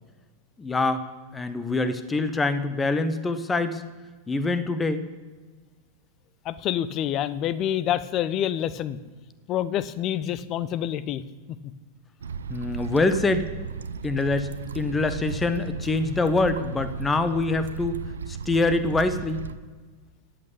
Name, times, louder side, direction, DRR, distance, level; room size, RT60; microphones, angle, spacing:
voice 1, 0.6-1.0 1.3-3.8 4.3-5.0 12.5-13.5 14.0-14.5 14.7-19.4, left 3 dB, 15° left, 12 dB, 1.0 m, -25 dB
voice 2, 6.4-9.0 9.5-11.2, left 11 dB, 35° left, 17 dB, 0.7 m, -27 dB
sound 1, 12.2-19.6, right 6 dB, 70° right, 0.6 m, -35 dB
13.5 x 8.7 x 8.6 m, 1.4 s
figure-of-eight pair, 90°, 0 cm